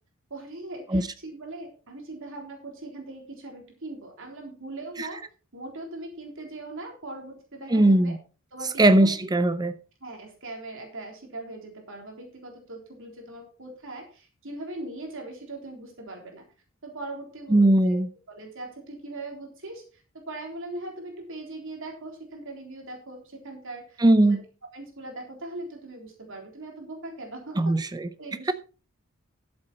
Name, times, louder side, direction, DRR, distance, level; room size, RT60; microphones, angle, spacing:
voice 1, 0.3-5.2 5.5-8.1 8.5-9.1 10.0-16.4 16.8-18.0 18.3-24.4 24.7-27.7 28.2-28.5, right 2 dB, 65° right, 3.5 m, -40 dB
voice 2, 7.7-8.2 8.8-9.7 17.5-18.1 24.0-24.4 27.6-28.1, right 1 dB, 20° right, 0.6 m, -19 dB
13.0 x 7.8 x 4.3 m
head